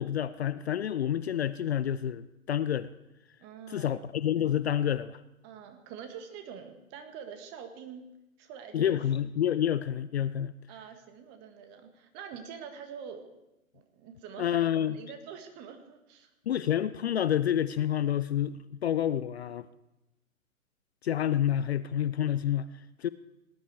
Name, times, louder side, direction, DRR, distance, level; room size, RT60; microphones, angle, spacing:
voice 1, 0.0-2.9 3.7-5.2 8.7-10.5 14.4-15.0 16.5-19.7 21.0-22.7 23.0-23.1, left 10 dB, 50° left, 15 dB, 0.5 m, -28 dB
voice 2, 3.4-3.9 5.4-8.0 8.4-9.1 10.7-13.3 13.7-14.7 14.9-16.3, right 7 dB, 25° right, 7 dB, 1.6 m, -45 dB
18.5 x 11.0 x 4.6 m, 0.93 s
figure-of-eight pair, 120°, 42 cm